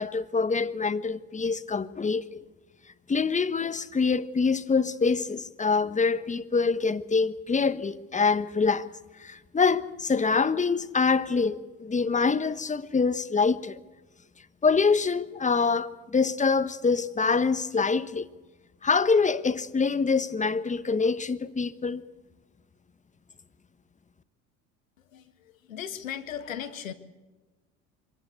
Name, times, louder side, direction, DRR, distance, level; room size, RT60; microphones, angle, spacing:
voice 1, 0.0-2.4 3.1-8.9 9.2-13.8 14.6-18.3 18.8-22.0, left 4 dB, 20° left, 1.3 m, -25 dB
voice 2, 25.7-26.9, left 9 dB, 85° left, 1.9 m, -36 dB
25.5 x 17.5 x 8.2 m
hypercardioid pair, 70°, 39 cm